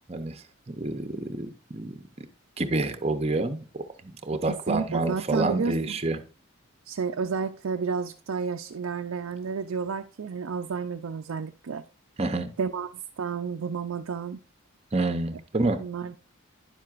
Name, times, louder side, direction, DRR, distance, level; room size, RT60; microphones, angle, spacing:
voice 1, 0.1-2.3 2.6-6.2 12.2-12.5 14.9-15.8, right 2 dB, 30° right, 0.6 m, -28 dB
voice 2, 4.7-6.0 6.9-11.8 12.6-12.9 13.2-14.4 15.8-16.2, right 5 dB, 75° right, 0.4 m, -31 dB
10.0 x 7.5 x 2.5 m
head